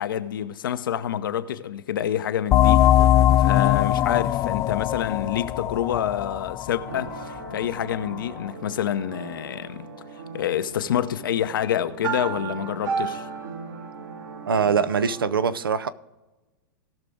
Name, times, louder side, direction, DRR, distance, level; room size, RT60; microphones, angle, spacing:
voice 1, 0.0-2.9 3.4-9.9 10.3-13.3, left 10 dB, 75° left, 0.8 m, -27 dB
sound 1, 2.5-7.8, left 12 dB, 25° left, 0.4 m, -21 dB
sound 2, 6.9-15.3, right 5 dB, 75° right, 2.4 m, -35 dB
voice 2, 14.5-15.9, right 6 dB, 90° right, 0.6 m, -23 dB
18.0 x 6.1 x 3.6 m
hypercardioid pair, 115°, 11 cm